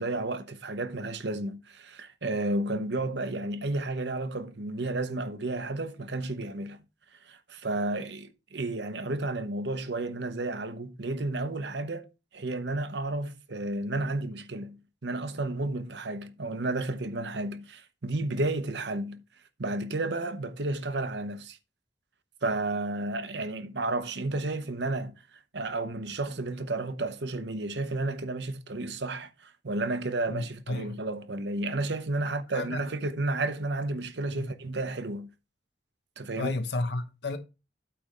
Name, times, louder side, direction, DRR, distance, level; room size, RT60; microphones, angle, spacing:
voice 1, 0.0-6.8 7.2-12.1 12.3-19.2 19.6-21.6 22.4-25.1 25.5-35.3 36.2-36.5, right 2 dB, 65° right, 0.9 m, -32 dB
voice 2, 30.3-31.0 32.5-32.8 34.3-34.5 36.3-37.4, left 2 dB, 65° left, 1.0 m, -32 dB
8.7 x 3.4 x 6.5 m
head